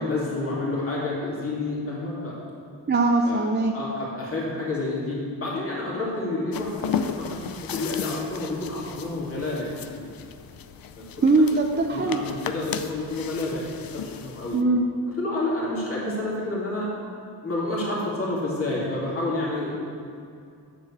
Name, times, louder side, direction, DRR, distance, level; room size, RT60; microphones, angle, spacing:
voice 1, 0.0-2.3 3.2-3.4 3.7-7.4 7.7-10.1 11.9-14.6 15.2-16.9 17.4-19.8, left 2 dB, 30° left, -6 dB, 2.6 m, -29 dB
voice 2, 2.9-3.7 11.2-12.2 14.5-14.8, right 3 dB, 25° right, 2 dB, 0.6 m, -21 dB
sound 1, 6.5-14.6, left 7 dB, 55° left, 0.6 m, -35 dB
7.8 x 6.9 x 7.0 m, 2.4 s
cardioid pair, 110°, 42 cm